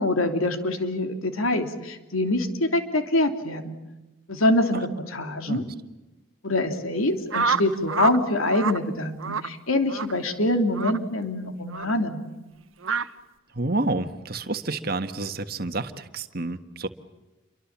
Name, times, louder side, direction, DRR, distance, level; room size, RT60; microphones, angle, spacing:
voice 1, 0.0-3.8 4.3-5.6 6.4-12.3, left 1 dB, 90° left, 6 dB, 3.0 m, -25 dB
sound 1, 7.3-8.2 8.5-8.8 9.2-9.5 9.9-10.1 10.7-11.0 11.7-11.9 12.8-13.1, right 5 dB, 80° right, 1.2 m, -27 dB
voice 2, 13.5-16.9, right 2 dB, 45° right, 9 dB, 1.6 m, -29 dB
29.0 x 24.0 x 7.4 m, 1.1 s
head